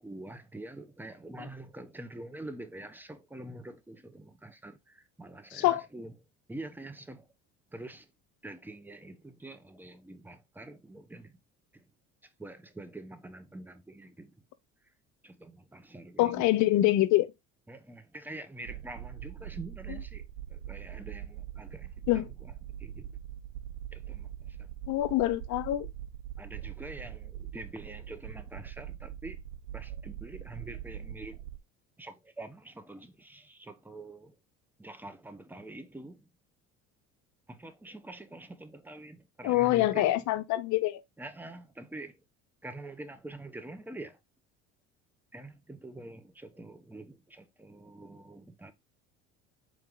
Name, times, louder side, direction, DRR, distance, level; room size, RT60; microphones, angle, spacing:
voice 1, 0.0-6.1 6.5-7.3 7.7-8.1 8.4-11.4 12.4-14.4 15.2-16.5 17.7-20.2 20.5-23.1 23.9-24.7 26.4-29.4 29.7-31.4 32.0-34.3 34.8-36.2 37.5-40.2 41.2-42.2 42.6-44.2 45.3-48.7, right 2 dB, 5° right, 0.8 m, -45 dB
voice 2, 5.5-5.8 16.2-17.3 22.1-22.3 24.9-25.9 39.4-41.0, left 15 dB, 60° left, 0.6 m, -25 dB
sound 1, 18.7-31.6, right 11 dB, 80° right, 0.5 m, -42 dB
4.5 x 2.9 x 3.8 m
supercardioid pair, 80°, 33 cm